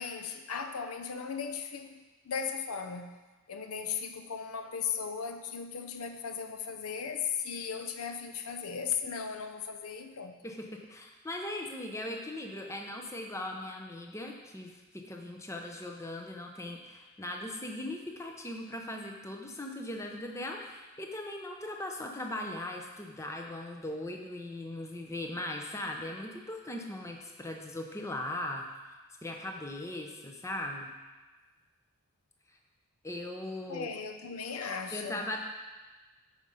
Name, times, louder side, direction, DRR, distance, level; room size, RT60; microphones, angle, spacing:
voice 1, 0.0-3.1 3.5-10.4 33.7-35.2, left 6 dB, 85° left, 7 dB, 0.7 m, -37 dB
voice 2, 10.4-28.6 29.2-30.9 33.0-33.9 34.9-35.4, left 1 dB, 15° left, 2 dB, 0.7 m, -39 dB
9.0 x 5.0 x 5.6 m, 1.2 s
head